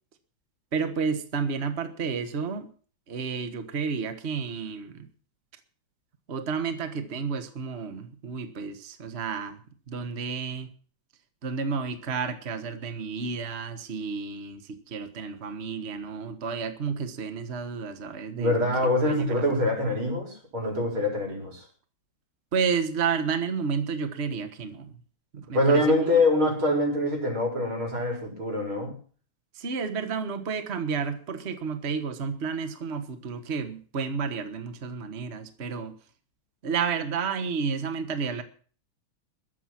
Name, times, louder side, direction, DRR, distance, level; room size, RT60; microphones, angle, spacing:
voice 1, 0.7-2.7 3.1-5.1 6.3-9.6 9.9-10.7 11.4-18.5 18.8-19.3 22.5-24.9 25.3-26.2 29.5-36.0 36.6-38.4, right 5 dB, 35° right, 9 dB, 1.5 m, -31 dB
voice 2, 18.4-21.7 25.5-28.9, left 1 dB, 85° right, 1 dB, 5.6 m, -24 dB
21.5 x 7.7 x 6.0 m, 0.42 s
omnidirectional pair, 2.2 m